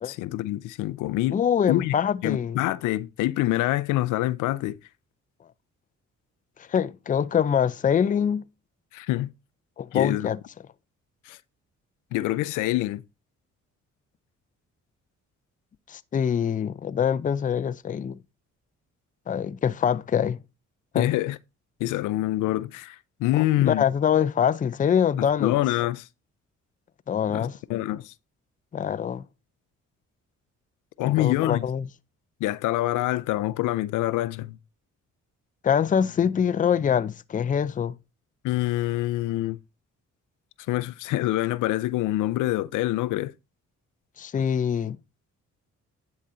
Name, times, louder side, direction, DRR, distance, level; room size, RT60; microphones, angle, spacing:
voice 1, 0.0-1.4 1.7-1.9 2.2-4.8 8.9-9.3 9.9-10.3 11.3-11.4 12.1-13.0 20.9-21.4 21.8-23.8 25.2-26.1 27.3-28.1 31.0-31.7 32.4-34.6 38.4-39.6 40.7-43.3, left 16 dB, 85° left, 0.5 m, -26 dB
voice 2, 1.3-2.6 6.6-8.4 9.8-10.4 15.9-18.2 19.3-20.4 20.9-21.1 23.3-25.6 27.1-27.6 28.7-29.2 31.0-31.9 35.6-38.0 44.2-45.0, left 8 dB, 25° left, 0.4 m, -24 dB
10.0 x 4.0 x 4.2 m
cardioid pair, 90°, 30 cm